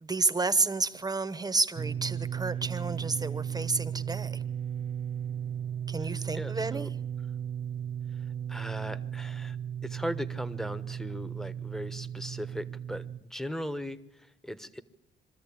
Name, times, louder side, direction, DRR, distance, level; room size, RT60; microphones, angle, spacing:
voice 1, 0.0-4.4 5.9-6.9, right 3 dB, 20° right, 1.1 m, -30 dB
sound 1, 1.8-13.2, right 9 dB, 35° right, 0.7 m, -35 dB
voice 2, 6.0-6.9 8.1-9.6 9.8-14.8, equal, ahead, 1.1 m, -38 dB
23.5 x 13.5 x 8.6 m
cardioid pair, 90°, 20 cm